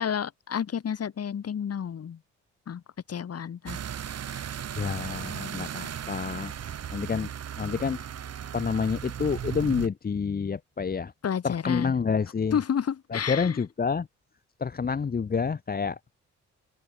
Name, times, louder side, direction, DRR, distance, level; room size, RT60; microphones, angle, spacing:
voice 1, 0.0-2.2 2.7-2.8 3.1-3.8 4.3-4.5 11.2-11.9 12.5-13.6, left 8 dB, 55° left, 6.2 m, -30 dB
sound 1, 3.7-9.9, right 9 dB, 55° right, 2.6 m, -36 dB
voice 2, 4.8-7.3 7.6-8.0 8.5-11.1 11.4-12.6 13.1-14.1 14.6-16.2, left 5 dB, 30° left, 1.2 m, -28 dB
open air
cardioid pair, 90°, 30 cm